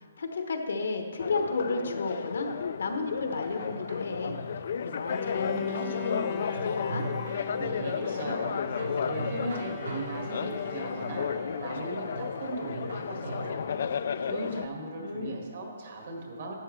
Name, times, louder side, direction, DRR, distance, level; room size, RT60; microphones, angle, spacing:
voice 1, 0.2-4.4 4.8-7.1 15.0-15.4, left 3 dB, 75° left, 5 dB, 1.1 m, -33 dB
sound 1, 1.2-14.7, left 7 dB, 55° left, 0.3 m, -33 dB
sound 2, 3.3-13.5, right 1 dB, 85° right, 1.5 m, -42 dB
Bowed string instrument, 5.1-11.8, left 7 dB, 10° left, 0.6 m, -40 dB
voice 2, 7.6-11.3 11.6-13.7 14.3-16.5, right 2 dB, 50° right, 1 dB, 1.9 m, -38 dB
11.5 x 8.1 x 3.3 m, 2.1 s
hypercardioid pair, 165°, 0 cm